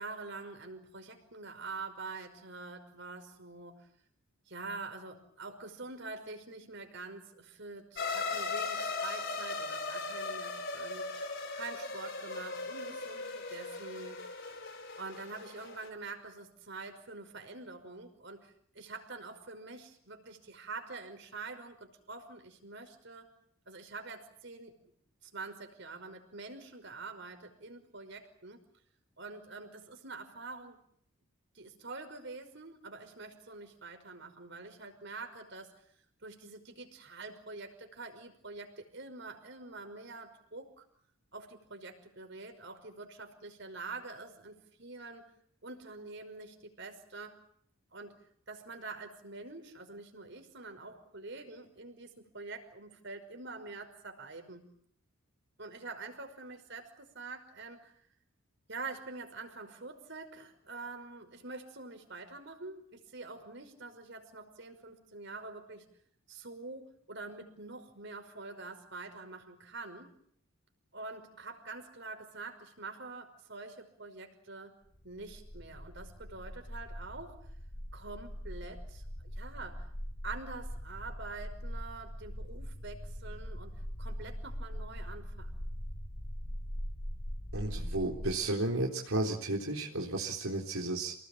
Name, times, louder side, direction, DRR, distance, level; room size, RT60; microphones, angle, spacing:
voice 1, 0.0-3.9 4.5-11.1 11.5-14.2 15.0-23.3 23.7-24.8 25.3-28.6 29.2-30.8 31.5-35.7 36.2-40.8 41.3-45.3 45.6-47.4 47.9-48.2 48.5-54.7 55.6-57.9 58.7-65.9 66.3-70.1 70.9-74.8 75.0-77.5 77.9-79.9 80.2-85.5, right 3 dB, 55° right, 5 dB, 5.5 m, -46 dB
sound 1, 8.0-15.9, left 3 dB, 60° left, 6.3 m, -38 dB
sound 2, 75.0-88.3, equal, 80° left, 5.5 m, -41 dB
voice 2, 87.5-91.1, right 2 dB, 85° right, -1 dB, 3.9 m, -33 dB
29.0 x 19.5 x 8.7 m, 0.65 s
head